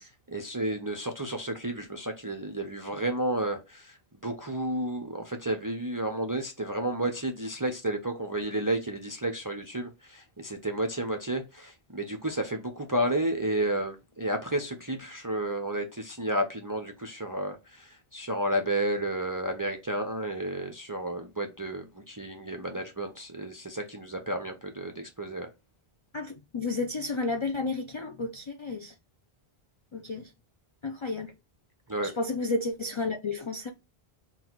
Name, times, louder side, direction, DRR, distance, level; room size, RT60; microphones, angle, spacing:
voice 1, 0.0-4.0 4.2-25.5 31.9-32.1, right 1 dB, 30° right, 0.4 m, -32 dB
voice 2, 26.1-28.9 29.9-30.3 30.8-31.3 32.2-33.7, left 3 dB, 50° left, 0.3 m, -32 dB
3.9 x 2.3 x 4.4 m
omnidirectional pair, 1.0 m